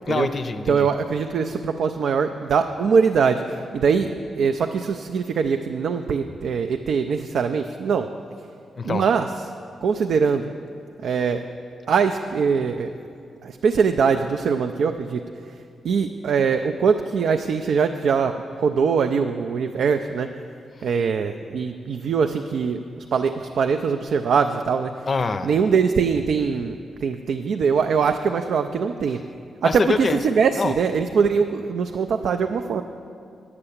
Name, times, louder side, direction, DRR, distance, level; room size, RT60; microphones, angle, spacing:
voice 1, 0.1-0.9 8.8-9.0 20.8-20.9 25.1-25.5 29.6-30.2 30.6-30.7, left 4 dB, 40° left, 10 dB, 0.5 m, -25 dB
voice 2, 0.7-8.1 8.4-8.5 8.8-9.5 9.8-10.5 11.0-11.4 11.9-12.9 13.4-20.3 20.8-25.1 25.4-29.2 29.6-32.8, right 6 dB, 70° right, 6 dB, 0.4 m, -22 dB
9.8 x 6.7 x 8.6 m, 2.4 s
cardioid pair, 105°, 0 cm